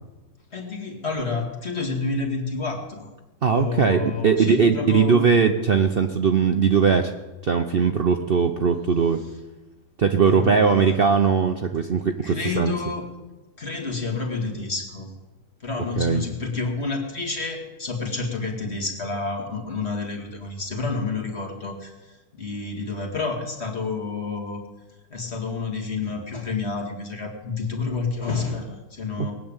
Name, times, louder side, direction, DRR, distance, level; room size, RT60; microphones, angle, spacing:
voice 1, 0.5-3.1 3.5-5.2 10.3-10.9 12.2-13.1 13.6-15.1 15.6-24.6 25.1-29.3, left 4 dB, 35° left, 1 dB, 2.4 m, -29 dB
voice 2, 3.4-7.1 7.4-9.2 10.0-12.7 16.0-16.2 29.2-29.3, right 6 dB, 80° right, 6 dB, 0.5 m, -20 dB
20.0 x 7.7 x 8.9 m, 1.1 s
omnidirectional pair, 2.1 m